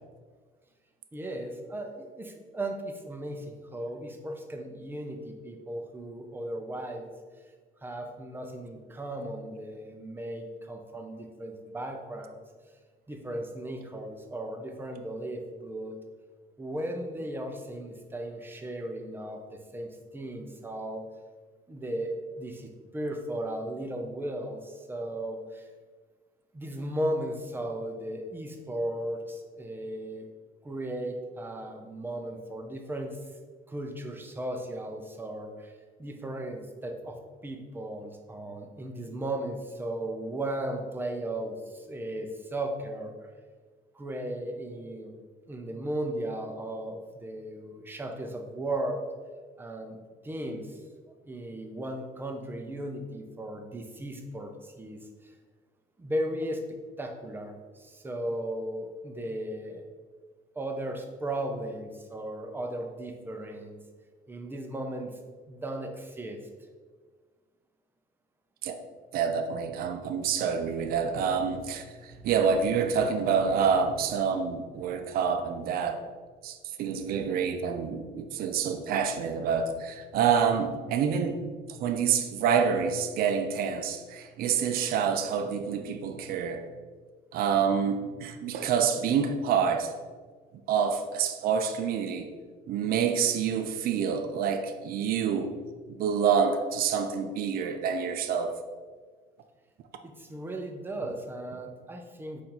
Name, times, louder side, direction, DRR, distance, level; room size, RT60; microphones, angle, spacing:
voice 1, 1.1-7.1 7.8-12.4 13.1-16.0 16.6-19.4 19.7-21.0 21.7-25.7 26.5-30.3 30.6-33.2 33.7-35.7 36.0-43.3 43.9-45.2 45.5-49.0 49.6-50.8 51.2-55.3 56.0-56.6 57.0-59.8 60.5-63.8 64.3-65.2 65.5-66.4 100.0-102.4, right 1 dB, 10° right, 3 dB, 0.5 m, -36 dB
voice 2, 69.1-71.8 72.2-76.0 76.4-81.4 81.8-86.6 87.3-89.9 90.7-92.3 92.7-95.5 96.0-98.6, right 6 dB, 60° right, 7 dB, 0.4 m, -27 dB
4.3 x 2.5 x 4.1 m, 1.5 s
cardioid pair, 110°, 17 cm